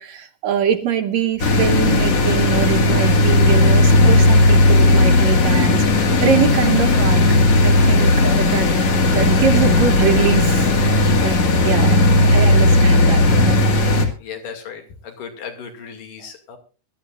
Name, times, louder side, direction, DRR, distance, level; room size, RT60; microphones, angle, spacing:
voice 1, 0.0-7.2 7.6-8.7 9.0-11.4 11.6-12.0 12.2-13.6, right 8 dB, 65° right, 6 dB, 2.2 m, -23 dB
sound 1, 1.4-14.1, left 2 dB, 50° left, 2.9 m, -15 dB
voice 2, 14.2-16.6, left 7 dB, 85° left, 4 dB, 4.0 m, -35 dB
22.5 x 12.5 x 2.5 m, 0.35 s
omnidirectional pair, 3.7 m